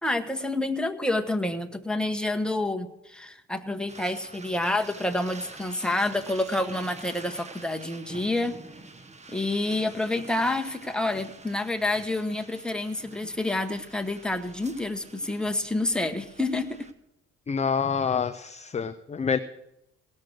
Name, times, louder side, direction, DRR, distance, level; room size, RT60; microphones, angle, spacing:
voice 1, 0.0-8.6 9.3-16.9, left 2 dB, 5° left, 5 dB, 1.1 m, -28 dB
sound 1, 3.9-16.9, right 3 dB, 20° right, 1.0 m, -47 dB
voice 2, 17.5-19.4, left 6 dB, 25° left, 11 dB, 0.5 m, -27 dB
17.0 x 6.6 x 6.2 m, 0.87 s
cardioid pair, 90°, 30 cm